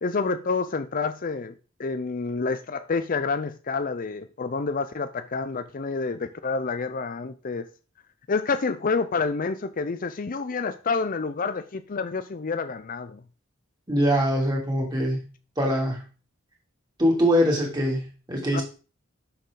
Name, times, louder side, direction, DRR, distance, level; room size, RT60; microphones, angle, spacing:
voice 1, 0.0-1.5 1.8-7.7 8.3-13.2 18.5-18.6, left 4 dB, 40° left, 0.5 m, -28 dB
voice 2, 13.9-15.3 15.6-16.0 17.0-18.6, equal, 20° right, 3.2 m, -23 dB
10.5 x 6.7 x 3.8 m
head